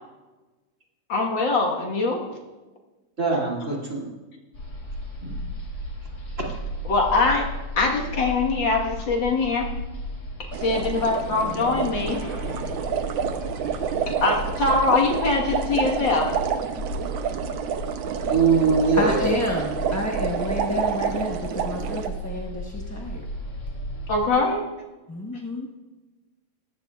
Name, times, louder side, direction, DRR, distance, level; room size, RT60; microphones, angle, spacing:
voice 1, 1.1-2.3 6.9-9.7 10.4-12.2 14.1-16.3 24.1-24.6, left 3 dB, 65° left, 0 dB, 2.2 m, -23 dB
voice 2, 3.2-4.1 5.2-5.4 6.4-6.5 18.3-19.4, right 4 dB, 35° right, -3 dB, 3.0 m, -22 dB
sound 1, 4.5-24.3, equal, 80° left, 3.9 m, -34 dB
sound 2, 10.5-22.1, right 8 dB, 70° right, 1.5 m, -29 dB
voice 3, 19.0-23.2 25.1-25.7, left 1 dB, 15° left, -1 dB, 0.6 m, -29 dB
18.5 x 15.0 x 2.4 m, 1.2 s
omnidirectional pair, 2.3 m